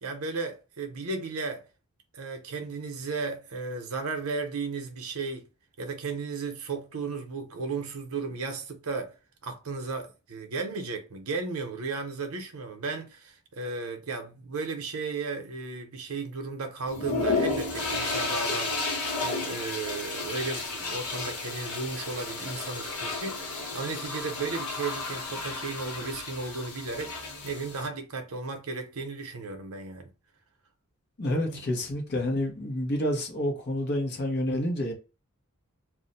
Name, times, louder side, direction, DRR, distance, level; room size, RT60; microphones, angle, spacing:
voice 1, 0.0-1.6 2.1-5.5 5.8-9.1 9.4-30.1 31.3-31.6, right 4 dB, 70° right, 0.7 m, -35 dB
sound 1, 16.9-27.9, left 3 dB, 75° left, 1.2 m, -32 dB
voice 2, 31.2-34.9, left 1 dB, 50° left, 0.8 m, -29 dB
2.4 x 2.1 x 3.9 m
head